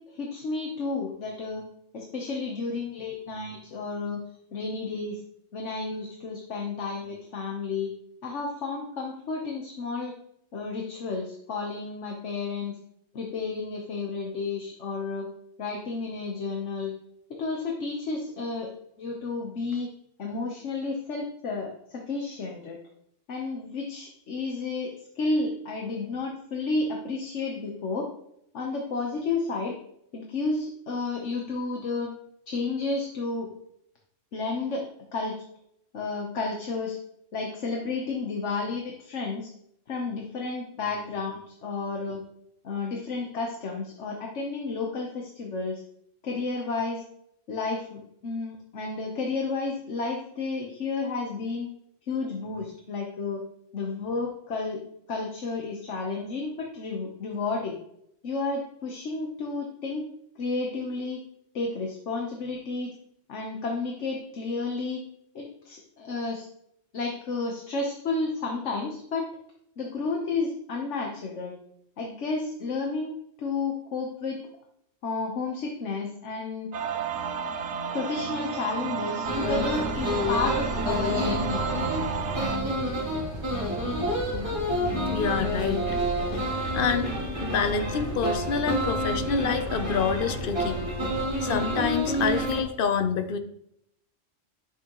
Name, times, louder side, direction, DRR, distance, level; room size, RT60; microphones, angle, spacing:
voice 1, 0.1-1.6 1.9-4.2 4.5-5.2 5.5-7.9 8.2-10.1 10.5-12.8 13.1-15.3 15.6-16.9 17.3-18.7 19.0-19.9 20.2-22.8 23.3-28.1 28.5-29.8 30.1-32.1 32.5-33.5 34.3-35.4 35.9-37.0 37.3-39.5 39.9-42.2 42.6-45.8 46.2-47.0 47.5-51.7 52.1-53.4 53.7-54.8 55.1-57.8 58.2-60.1 60.4-61.2 61.5-62.9 63.3-65.0 65.3-66.5 66.9-69.3 69.8-71.5 72.0-74.4 75.0-76.7 77.9-81.7 84.3-84.6, left 3 dB, 65° left, 0 dB, 1.4 m, -31 dB
sound 1, 76.7-82.6, right 6 dB, 65° right, 1.1 m, -32 dB
sound 2, 79.2-92.6, equal, 20° right, 2.3 m, -29 dB
sound 3, 79.7-90.9, left 1 dB, 5° right, 1.8 m, -42 dB
voice 2, 85.1-85.8 86.7-87.1 87.4-90.8 91.4-93.4, left 6 dB, 50° left, 8 dB, 0.9 m, -27 dB
10.5 x 6.6 x 3.1 m, 0.75 s
omnidirectional pair, 1.3 m